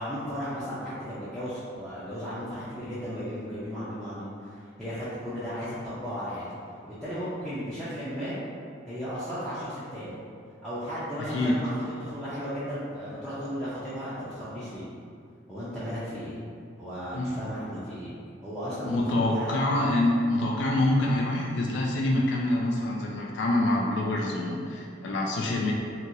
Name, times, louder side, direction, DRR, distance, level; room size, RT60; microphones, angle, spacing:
voice 1, 0.0-6.5 6.8-8.3 8.9-10.2 10.6-11.7 12.0-14.9 15.5-16.4 16.8-18.1 18.4-19.6, equal, 5° left, -14 dB, 0.5 m, -35 dB
voice 2, 11.2-11.6 17.1-17.3 18.8-25.7, left 1 dB, 70° left, -1 dB, 0.3 m, -26 dB
2.9 x 2.7 x 2.6 m, 2.3 s
head